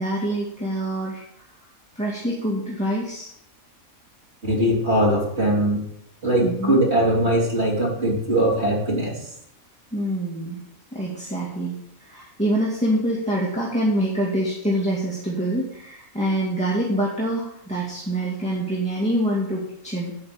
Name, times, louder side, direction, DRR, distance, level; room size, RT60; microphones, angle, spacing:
voice 1, 0.0-1.5 2.0-3.3 6.4-6.8 9.9-10.6 10.9-20.1, right 1 dB, 5° left, -5 dB, 2.4 m, -25 dB
voice 2, 4.4-5.8 6.2-9.2, right 1 dB, 45° right, -3 dB, 3.6 m, -21 dB
12.0 x 5.8 x 8.9 m, 0.77 s
omnidirectional pair, 1.5 m